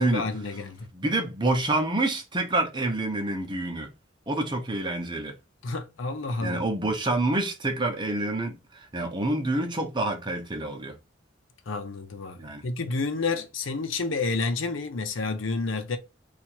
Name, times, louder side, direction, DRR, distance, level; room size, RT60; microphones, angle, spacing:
voice 1, 0.0-0.9 5.6-6.6 11.7-16.0, left 3 dB, 90° left, 0.7 m, -30 dB
voice 2, 0.9-3.9 4.3-5.3 6.4-11.0 12.4-12.6, right 2 dB, 25° right, 0.8 m, -27 dB
2.9 x 2.4 x 4.3 m
head